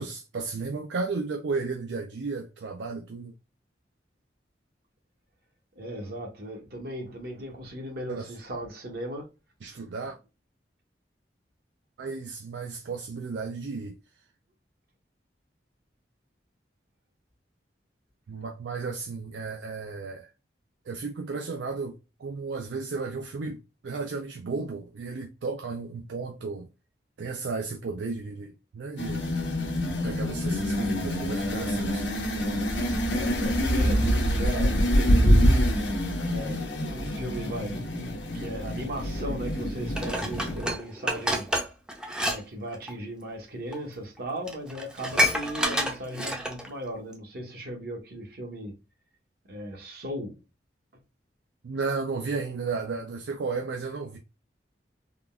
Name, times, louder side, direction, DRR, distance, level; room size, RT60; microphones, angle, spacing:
voice 1, 0.0-3.3 8.1-8.3 9.6-10.2 12.0-14.0 18.3-20.3 20.9-26.7 27.2-29.2 29.9-32.1 51.6-54.2, right 4 dB, 75° right, 0.4 m, -34 dB
voice 2, 5.8-9.3 9.6-9.8 33.0-35.6 36.3-37.8 38.2-41.5 42.2-48.8 49.5-50.4, equal, 60° right, 1.0 m, -37 dB
sound 1, 29.0-40.7, equal, 90° left, 1.0 m, -26 dB
Dishes pots and pans, 39.9-42.4 42.7-42.9 43.7-43.8 44.2-44.3 44.5-46.7 47.1-47.2, equal, 5° right, 0.5 m, -28 dB
3.6 x 2.3 x 2.3 m
head